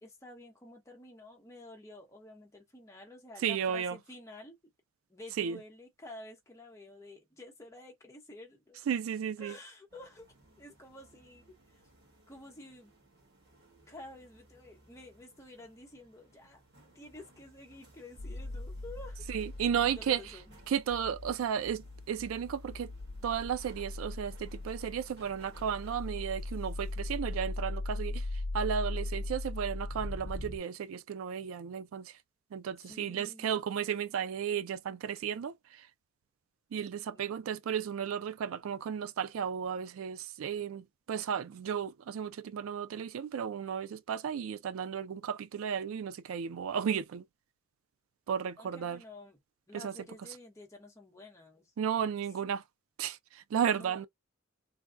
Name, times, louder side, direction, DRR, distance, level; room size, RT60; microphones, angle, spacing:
voice 1, 0.0-4.7 5.1-8.8 9.4-10.3 10.6-11.8 12.3-12.9 13.9-16.6 16.9-19.2 19.7-20.6 32.8-33.6 37.1-37.3 48.6-49.4 49.7-52.2 53.7-54.1, left 1 dB, 15° left, 0.9 m, -50 dB
voice 2, 3.4-4.0 5.4-5.6 8.9-9.5 19.3-20.2 20.7-22.9 23.2-28.2 28.5-32.1 32.5-35.9 36.7-47.2 48.3-49.0 49.7-49.9 51.8-52.6 53.0-54.1, right 8 dB, 80° right, 0.3 m, -34 dB
sound 1, 9.9-26.9, right 2 dB, 55° right, 1.5 m, -61 dB
sound 2, 18.2-30.6, left 2 dB, 50° left, 0.7 m, -39 dB
3.4 x 2.2 x 2.5 m
head